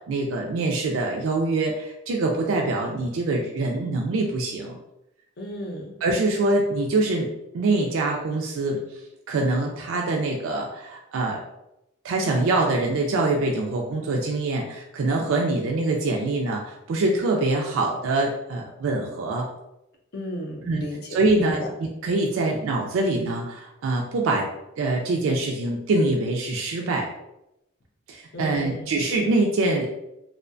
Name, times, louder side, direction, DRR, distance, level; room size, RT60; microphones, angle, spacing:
voice 1, 0.0-4.8 6.0-7.3 7.5-8.8 9.3-11.4 12.0-19.5 20.6-24.5 24.8-27.1 28.1-29.9, right 2 dB, 75° right, 0 dB, 0.3 m, -24 dB
voice 2, 5.4-6.0 20.1-21.0 21.4-21.5 28.3-29.0, equal, 50° left, 1 dB, 0.5 m, -34 dB
2.6 x 2.1 x 2.5 m, 0.87 s
head